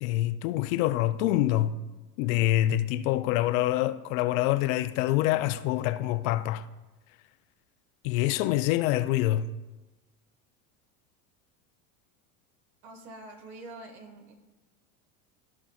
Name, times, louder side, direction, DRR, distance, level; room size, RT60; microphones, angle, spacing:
voice 1, 0.0-1.8 2.2-6.7 8.0-9.5, left 14 dB, 65° left, 0.6 m, -26 dB
voice 2, 12.8-14.3, right 2 dB, 75° right, 1.8 m, -45 dB
14.0 x 5.5 x 2.4 m
supercardioid pair, 115°, 43 cm